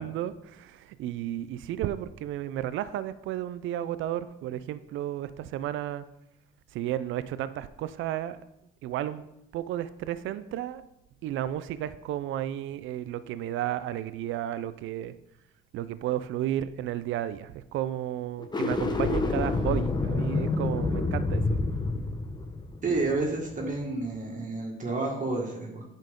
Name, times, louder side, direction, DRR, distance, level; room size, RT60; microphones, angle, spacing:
voice 1, 0.0-6.0 6.7-8.4 8.8-9.3 9.5-10.8 11.2-15.1 15.7-21.6, right 12 dB, 80° right, 14 dB, 0.4 m, -33 dB
sound 1, 18.4-23.7, left 3 dB, 20° left, 0.9 m, -28 dB
voice 2, 22.8-25.8, right 3 dB, 40° right, -1 dB, 1.8 m, -30 dB
9.0 x 5.6 x 3.7 m, 0.85 s
cardioid pair, 90°, 20 cm